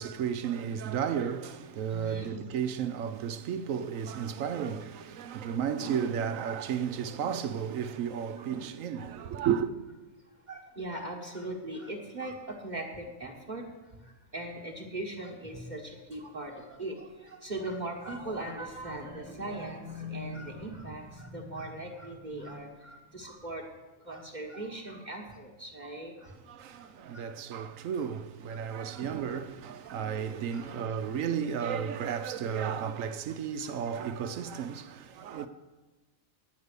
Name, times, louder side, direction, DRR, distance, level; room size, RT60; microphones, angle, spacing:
voice 1, 0.0-9.7 26.4-35.5, right 8 dB, 70° right, 1.0 m, -33 dB
voice 2, 1.9-2.4 8.4-8.5 10.5-13.7 14.3-23.6 24.0-26.3 26.8-27.3 28.5-28.6 28.9-29.0 29.3-29.4 30.1-30.2 30.5-30.7 31.7-31.8 33.6-33.7 35.3-35.5, right 1 dB, 35° right, 1.4 m, -39 dB
9.6 x 9.5 x 6.7 m
omnidirectional pair, 1.5 m